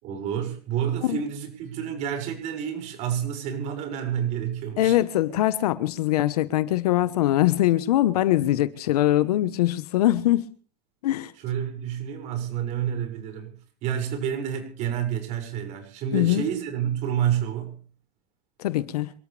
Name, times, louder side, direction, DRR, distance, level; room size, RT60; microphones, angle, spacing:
voice 1, 0.0-5.0 11.4-17.8, right 9 dB, 35° right, 6.5 m, -29 dB
voice 2, 4.8-10.4 11.0-11.3 16.1-16.4 18.6-19.1, left 14 dB, 65° left, 1.3 m, -22 dB
28.0 x 14.0 x 3.5 m
supercardioid pair, 165°, 21 cm